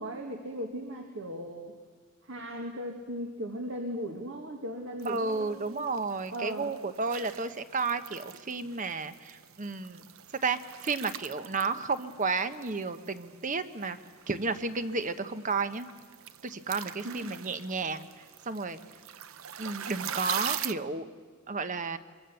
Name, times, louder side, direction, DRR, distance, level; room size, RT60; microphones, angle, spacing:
voice 1, 0.0-1.8 2.2-5.9 6.3-6.7 17.0-17.4, equal, 65° right, 3 dB, 1.9 m, -37 dB
sound 1, 5.0-20.7, right 10 dB, 80° right, 0.7 m, -43 dB
voice 2, 5.1-10.0 10.4-14.0 14.3-15.9 16.4-18.1 18.5-18.8 19.6-21.1 21.5-22.0, right 4 dB, 40° right, 11 dB, 1.0 m, -32 dB
24.5 x 23.5 x 7.0 m, 1.5 s
head